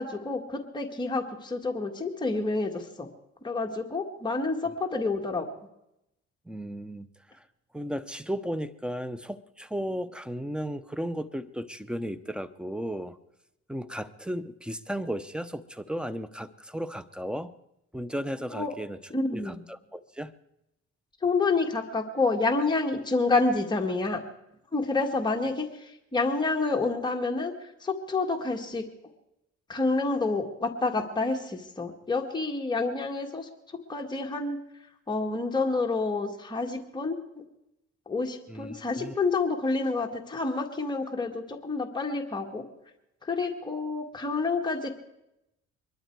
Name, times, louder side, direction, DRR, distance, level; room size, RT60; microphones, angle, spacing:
voice 1, 0.0-3.1 3.4-5.5 18.5-18.8 19.1-19.6 21.2-24.2 24.7-28.8 29.7-33.5 33.9-34.6 35.1-37.2 38.1-42.6 43.2-44.9, left 3 dB, 15° left, 2 dB, 1.8 m, -28 dB
voice 2, 6.5-7.4 7.7-13.2 13.7-17.5 17.9-19.0 19.3-20.3 38.5-39.2, equal, 5° right, 14 dB, 0.8 m, -35 dB
22.5 x 12.0 x 4.7 m, 0.86 s
cardioid pair, 90°, 30 cm